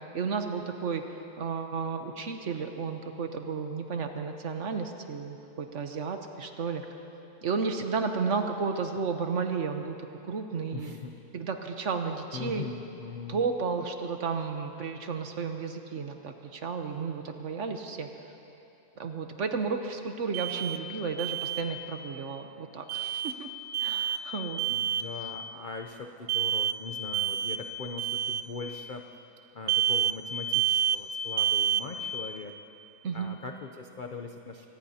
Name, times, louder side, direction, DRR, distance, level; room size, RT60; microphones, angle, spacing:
voice 1, 0.1-1.0 1.4-6.8 7.4-10.0 10.3-11.0 11.3-12.7 13.3-18.1 19.0-23.5 23.8-24.7 33.0-33.3, right 5 dB, 55° right, 5 dB, 1.0 m, -32 dB
voice 2, 10.7-11.2 12.3-13.4 24.7-29.1 29.5-32.5 33.1-34.7, left 4 dB, 75° left, 4 dB, 0.4 m, -41 dB
Alarm, 20.3-20.8 21.2-21.6 22.9-23.3 23.7-24.2 24.6-25.1 26.3-26.8 27.1-27.6 28.0-28.4 29.7-30.2 30.5-31.0 31.4-31.8, right 10 dB, 75° right, 0.6 m, -28 dB
25.0 x 19.0 x 2.8 m, 2.9 s
omnidirectional pair, 1.7 m